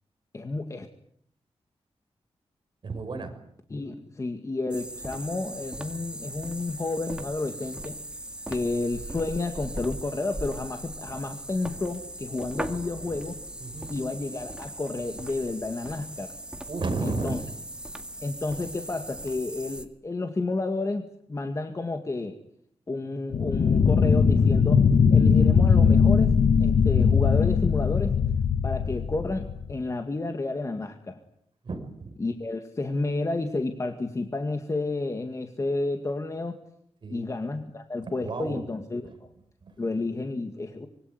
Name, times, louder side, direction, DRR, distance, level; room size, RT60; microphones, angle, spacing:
voice 1, 0.3-0.9 3.7-8.0 8.5-13.4 13.9-16.3 17.0-17.4 18.2-22.4 22.9-24.8 25.1-26.3 26.6-28.2 28.6-31.2 32.2-36.6 37.1-39.3 39.8-40.9, left 2 dB, 30° left, 6 dB, 2.1 m, -31 dB
voice 2, 2.8-3.3 13.6-13.9 16.7-17.4 31.6-32.1 37.0-37.2 38.2-38.6 39.0-39.1 39.6-39.8, right 3 dB, 50° right, 6 dB, 5.9 m, -32 dB
sound 1, 4.7-19.8, right 1 dB, 10° right, 2.1 m, -39 dB
sound 2, 23.3-29.8, left 6 dB, 80° left, 1.7 m, -20 dB
25.5 x 23.5 x 9.6 m, 0.71 s
wide cardioid pair, 150°, 11 cm